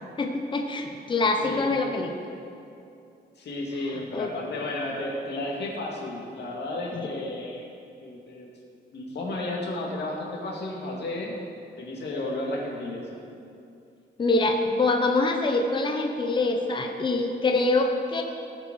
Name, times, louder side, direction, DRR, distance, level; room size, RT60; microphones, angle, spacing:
voice 1, 0.2-2.1 4.1-4.3 6.9-7.1 14.2-18.2, left 2 dB, 25° left, 3 dB, 0.8 m, -25 dB
voice 2, 1.4-1.8 3.4-7.7 8.0-8.5 8.9-11.4 11.8-13.1, left 2 dB, 65° left, -3 dB, 2.4 m, -33 dB
18.5 x 7.3 x 4.7 m, 2.6 s
wide cardioid pair, 175°, 19 cm